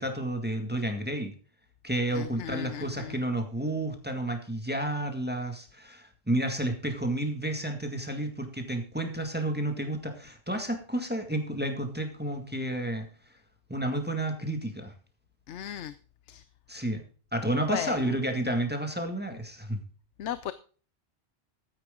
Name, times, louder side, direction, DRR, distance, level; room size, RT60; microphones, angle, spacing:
voice 1, 0.0-1.3 1.8-13.1 13.7-14.9 16.7-17.0 17.3-19.8, right 1 dB, 10° right, 4 dB, 1.9 m, -31 dB
voice 2, 2.2-2.8 15.5-15.9 16.3-16.4 17.7-17.9 20.2-20.5, left 10 dB, 90° left, 14 dB, 1.0 m, -35 dB
13.0 x 9.8 x 3.7 m, 0.39 s
omnidirectional pair, 1.2 m